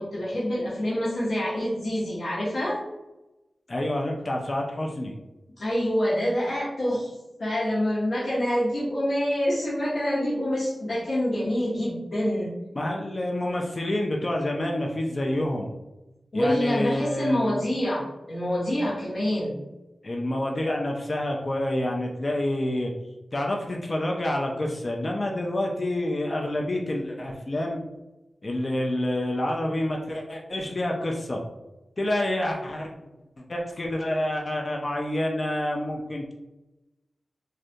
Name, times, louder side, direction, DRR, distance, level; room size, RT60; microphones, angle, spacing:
voice 1, 0.0-2.8 5.6-7.1 7.4-12.5 16.3-19.6, equal, 75° left, -9 dB, 0.8 m, -26 dB
voice 2, 3.7-5.2 12.8-15.7 16.3-17.5 20.0-22.9 23.3-27.8 28.4-31.4 32.0-32.9 33.5-36.3, left 1 dB, 45° left, 0 dB, 0.4 m, -28 dB
2.4 x 2.2 x 2.7 m, 0.99 s
cardioid pair, 45°, 0 cm